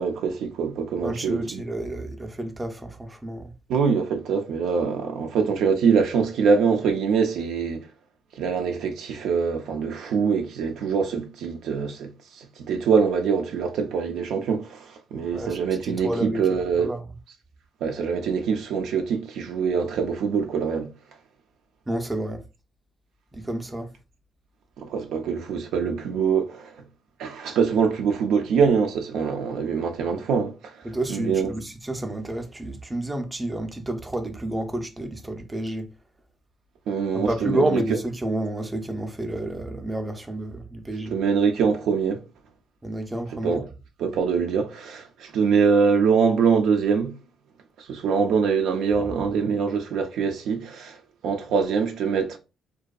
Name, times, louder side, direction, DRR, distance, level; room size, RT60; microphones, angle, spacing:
voice 1, 0.0-1.6 3.7-7.9 8.4-12.1 12.4-16.9 17.8-20.9 24.8-26.7 27.2-31.5 36.9-37.8 41.1-42.2 43.4-43.6 44.0-47.2 47.8-52.4, right 6 dB, 80° right, 0.4 m, -24 dB
voice 2, 1.0-3.5 15.3-17.0 21.9-22.4 23.3-23.9 30.8-35.9 37.3-41.2 42.8-43.7 49.0-49.1, right 1 dB, 15° right, 0.5 m, -30 dB
2.6 x 2.2 x 2.3 m
cardioid pair, 90°, 0 cm